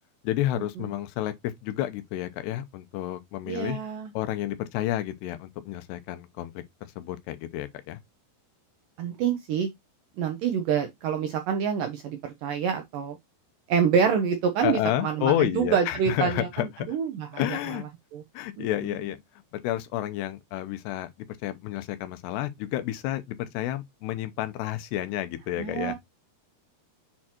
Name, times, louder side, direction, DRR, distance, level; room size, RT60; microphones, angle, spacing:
voice 1, 0.2-3.8 4.1-6.5 7.0-8.0 14.6-17.0 17.4-17.8 18.3-19.2 19.5-26.0, left 13 dB, 85° left, 2.9 m, -30 dB
voice 2, 3.5-4.1 9.0-9.7 10.2-13.2 13.7-17.8 18.1-18.2 18.6-19.0 25.6-25.9, right 7 dB, 75° right, 2.0 m, -27 dB
7.5 x 4.4 x 2.9 m
omnidirectional pair, 4.8 m